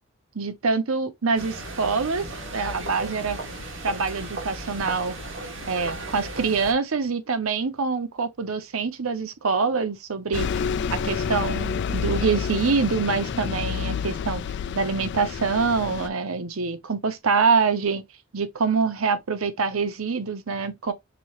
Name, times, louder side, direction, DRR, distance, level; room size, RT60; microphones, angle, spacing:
voice 1, 0.3-2.2 2.5-3.4 3.8-5.2 5.7-14.4 14.7-18.1 18.3-20.9, right 4 dB, 80° right, 0.8 m, -25 dB
sound 1, 1.4-6.7, right 2 dB, 65° right, 2.0 m, -35 dB
Bus, 10.3-16.1, left 6 dB, 55° left, 0.4 m, -29 dB
5.9 x 2.8 x 3.0 m
head